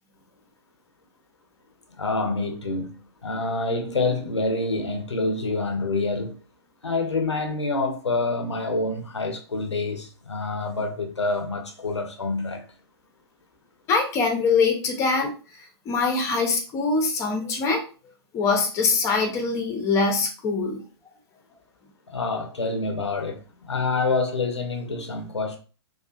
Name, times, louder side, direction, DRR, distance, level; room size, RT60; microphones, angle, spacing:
voice 1, 2.0-3.0 3.2-6.4 6.8-12.6 22.1-23.4 23.7-25.6, left 3 dB, 85° left, 0.6 m, -27 dB
voice 2, 13.9-15.3 15.9-17.8 18.3-20.8, left 4 dB, 20° left, 0.5 m, -23 dB
2.4 x 2.3 x 2.2 m
figure-of-eight pair, 110°, 14 cm